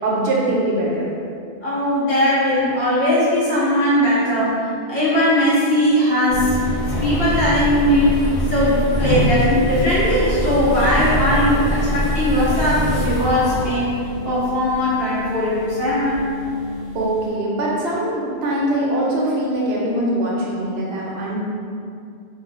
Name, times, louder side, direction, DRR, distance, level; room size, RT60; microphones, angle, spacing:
voice 1, 0.0-1.1 16.9-21.4, right 1 dB, 70° right, -4 dB, 0.8 m, -22 dB
voice 2, 1.6-6.5 7.0-13.9 14.2-16.3, left 1 dB, 65° left, -11 dB, 1.2 m, -19 dB
sound 1, 6.3-17.3, equal, 45° left, 0.9 m, -24 dB
3.1 x 2.2 x 2.3 m, 2.4 s
omnidirectional pair, 1.1 m